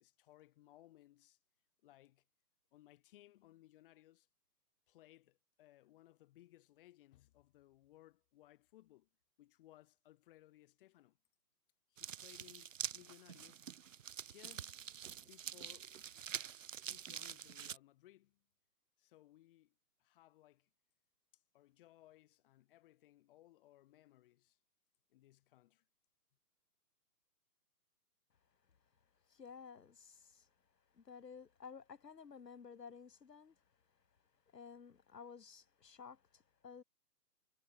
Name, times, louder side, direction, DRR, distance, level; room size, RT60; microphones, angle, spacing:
voice 1, 0.0-1.4 1.8-2.2 2.7-4.3 4.9-9.1 9.4-11.2 11.9-13.7 14.3-14.8 15.2-15.9 16.8-18.4 19.0-19.7 20.0-20.7 21.3-24.6 25.1-25.8, left 15 dB, 35° left, 5.4 m, -63 dB
sound 1, 12.0-17.8, right 9 dB, 50° right, 0.9 m, -46 dB
voice 2, 29.3-30.5 30.9-33.5 34.5-36.8, left 6 dB, 80° left, 1.4 m, -54 dB
figure-of-eight pair, 140°, 49 cm